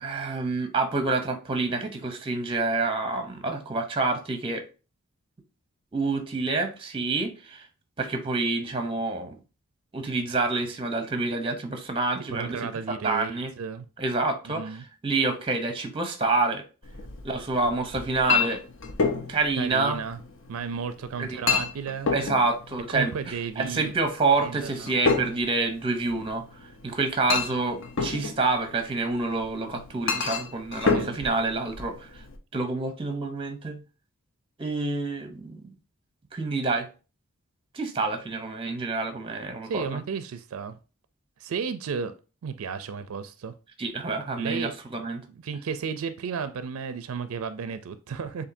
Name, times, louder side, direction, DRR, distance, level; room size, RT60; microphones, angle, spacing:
voice 1, 0.0-4.6 5.9-7.6 8.0-9.3 9.9-13.5 14.0-14.7 15.0-16.6 17.2-18.6 19.3-20.0 21.2-21.6 22.1-26.4 26.8-32.1 32.5-33.8 34.6-35.7 36.3-36.9 37.7-40.0 43.8-45.2, right 3 dB, 25° right, 0.7 m, -27 dB
voice 2, 12.3-13.9 14.4-14.8 19.6-20.2 20.5-22.1 22.9-23.9 24.4-24.9 30.9-31.2 39.6-40.8 41.4-42.1 42.4-43.5 44.4-44.7 45.3-48.4, right 6 dB, 75° right, 0.4 m, -33 dB
Chink clink, 16.8-32.4, left 5 dB, 55° left, 0.6 m, -31 dB
7.0 x 2.6 x 2.6 m
head